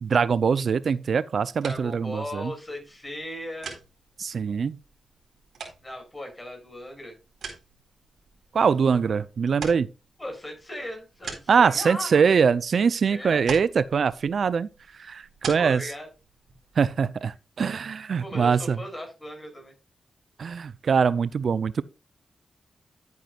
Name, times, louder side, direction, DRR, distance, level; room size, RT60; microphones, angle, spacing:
voice 1, 0.0-2.5 4.2-4.8 8.5-9.9 11.5-14.7 15.0-15.8 16.8-18.8 20.4-21.8, right 6 dB, 65° right, 0.5 m, -23 dB
sound 1, 1.5-17.2, right 5 dB, 85° right, 4.3 m, -44 dB
voice 2, 1.6-3.8 5.8-7.2 10.2-12.2 13.1-13.4 15.5-16.1 18.2-19.7, left 1 dB, 20° left, 6.3 m, -37 dB
12.0 x 9.3 x 2.4 m
cardioid pair, 80°, 0 cm